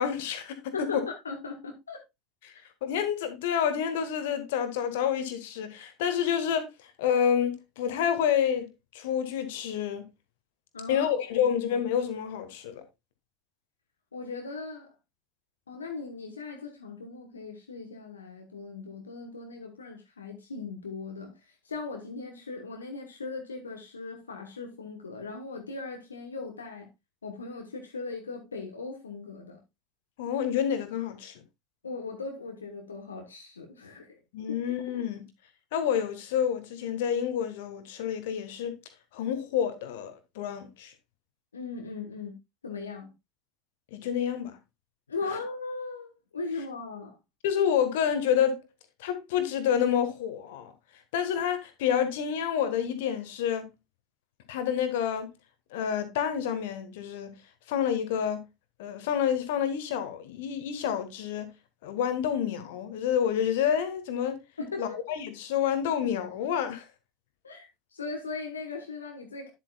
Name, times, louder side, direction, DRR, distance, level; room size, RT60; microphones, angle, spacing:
voice 1, 0.0-1.0 2.4-2.5 2.8-10.0 10.9-12.8 30.2-31.4 34.3-35.2 35.7-38.8 39.1-40.9 43.9-44.6 47.4-48.6 49.0-50.7 51.1-53.7 54.5-55.3 55.7-57.3 57.7-58.4 58.8-61.5 61.8-64.4 64.8-66.9, left 8 dB, 60° left, 1.4 m, -28 dB
voice 2, 0.7-2.0 10.7-11.1 11.4-11.5 14.1-14.9 15.7-26.9 27.2-29.6 31.8-34.2 41.5-42.3 42.6-43.1 45.1-47.2 64.6-65.0 67.4-69.5, left 4 dB, 75° left, 1.2 m, -38 dB
9.8 x 7.7 x 2.3 m
figure-of-eight pair, 75°, 0 cm